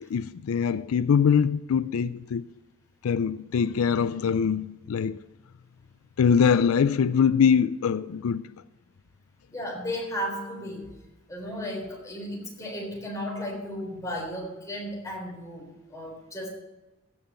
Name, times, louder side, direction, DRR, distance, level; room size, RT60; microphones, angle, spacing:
voice 1, 0.0-2.4 3.0-5.2 6.2-8.5, left 7 dB, 85° left, 0.4 m, -23 dB
voice 2, 9.5-10.9 11.3-16.5, equal, 15° left, 3.8 m, -34 dB
15.5 x 5.6 x 6.8 m
head